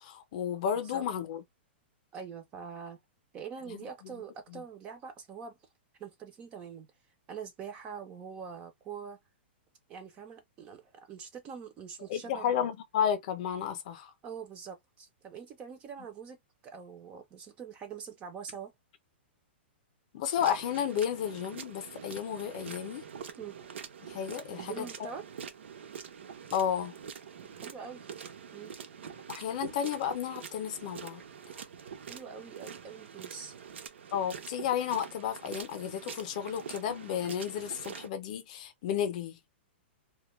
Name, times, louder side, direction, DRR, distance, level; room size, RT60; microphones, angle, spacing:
voice 1, 0.0-1.4 3.7-4.2 4.5-4.6 12.1-14.1 20.1-23.0 24.1-25.1 26.5-26.9 29.3-31.2 34.1-39.4, left 9 dB, 40° left, 0.5 m, -32 dB
voice 2, 2.1-3.0 3.3-5.6 6.0-6.9 7.3-9.2 9.9-12.7 14.2-16.4 16.6-18.7 23.4-23.6 24.5-25.3 27.4-28.1 28.5-28.7 32.1-33.6, right 6 dB, 20° right, 0.4 m, -44 dB
sound 1, 20.4-38.1, right 7 dB, 90° right, 0.6 m, -45 dB
2.2 x 2.1 x 2.9 m
hypercardioid pair, 170°, 6 cm